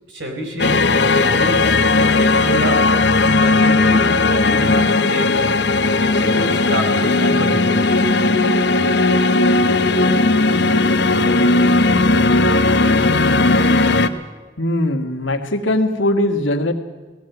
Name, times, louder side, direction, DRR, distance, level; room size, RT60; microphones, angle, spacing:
voice 1, 0.1-1.8 2.2-2.9 3.4-5.3 6.0-8.0, right 1 dB, 75° right, 2 dB, 5.0 m, -28 dB
sound 1, 0.6-14.1, left 2 dB, 60° left, 1.0 m, -16 dB
voice 2, 14.6-16.7, left 1 dB, 85° left, 5 dB, 2.0 m, -20 dB
18.0 x 16.0 x 9.3 m, 1.3 s
head